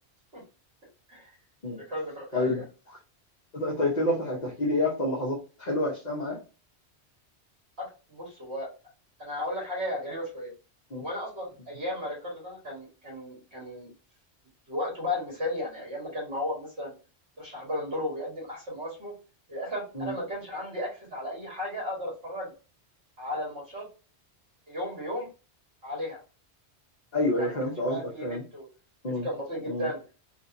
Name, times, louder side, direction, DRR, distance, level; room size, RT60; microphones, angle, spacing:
voice 1, 1.8-2.6 7.8-8.7 9.2-10.5 11.0-13.9 14.7-16.9 17.4-19.1 19.5-22.5 23.2-23.9 24.7-25.3 25.8-26.2 27.4-28.7 29.0-30.0, left 1 dB, 75° right, -5 dB, 1.9 m, -35 dB
voice 2, 2.3-3.0 3.5-6.4 10.9-11.1 19.9-20.1 27.1-28.4 29.0-29.3 29.7-29.9, left 1 dB, 45° left, -5 dB, 1.0 m, -28 dB
3.6 x 2.7 x 2.6 m, 0.34 s
omnidirectional pair, 1.1 m